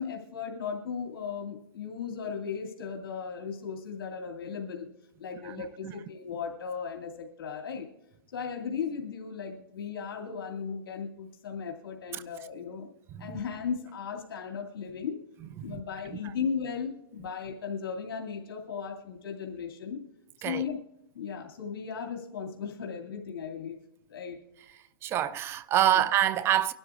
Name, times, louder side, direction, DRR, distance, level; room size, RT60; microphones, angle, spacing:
voice 1, 0.0-4.9 5.2-7.9 8.3-12.9 13.2-15.2 15.6-20.0 20.4-20.8 21.1-23.8 24.1-24.4, left 6 dB, 70° left, 2.4 m, -36 dB
voice 2, 25.0-26.7, right 12 dB, 20° right, 0.4 m, -26 dB
22.5 x 12.0 x 2.5 m
hypercardioid pair, 140°, 12 cm